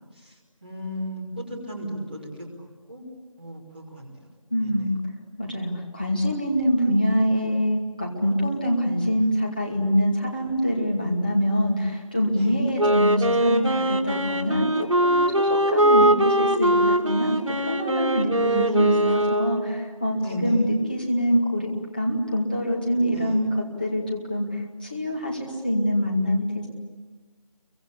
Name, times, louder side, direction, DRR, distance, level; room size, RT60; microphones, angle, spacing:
voice 1, 0.6-2.3 2.6-3.0 3.4-4.1 12.3-12.5 18.4-19.1 20.2-20.6 23.1-23.4, right 2 dB, 15° right, -6 dB, 3.4 m, -31 dB
voice 2, 4.5-5.0 5.4-26.7, equal, 15° left, -2 dB, 2.4 m, -25 dB
Wind instrument woodwind instrument, 12.7-19.8, right 1 dB, 60° right, 4.1 m, -22 dB
29.0 x 24.0 x 8.5 m, 1.3 s
figure-of-eight pair, 175°, 18 cm